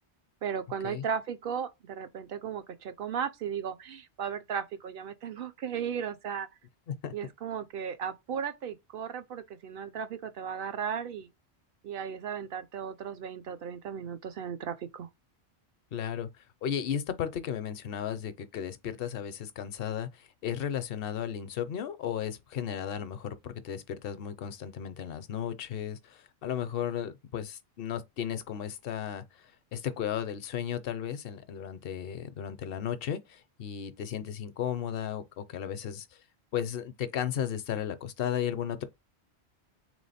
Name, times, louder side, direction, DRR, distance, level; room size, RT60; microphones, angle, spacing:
voice 1, 0.4-6.5 7.1-11.3 11.8-15.1, right 7 dB, 65° right, 0.7 m, -36 dB
voice 2, 15.9-16.3 16.6-29.5 29.7-36.1 36.5-38.8, left 9 dB, 65° left, 0.7 m, -34 dB
3.5 x 3.1 x 4.1 m
omnidirectional pair, 1.1 m